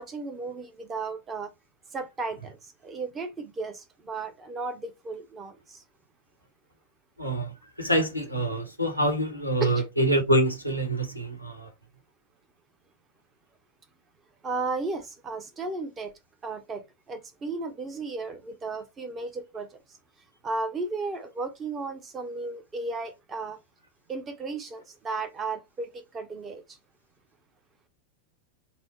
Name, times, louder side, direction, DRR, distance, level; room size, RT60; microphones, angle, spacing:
voice 1, 0.0-1.5 1.9-2.6 2.8-5.8 9.6-9.8 14.4-16.1 16.4-19.8 20.4-23.6 24.1-26.6, right 3 dB, 20° right, 0.7 m, -34 dB
voice 2, 7.2-11.7, right 1 dB, 90° right, 1.0 m, -26 dB
4.2 x 2.1 x 4.1 m
figure-of-eight pair, 90°, 0 cm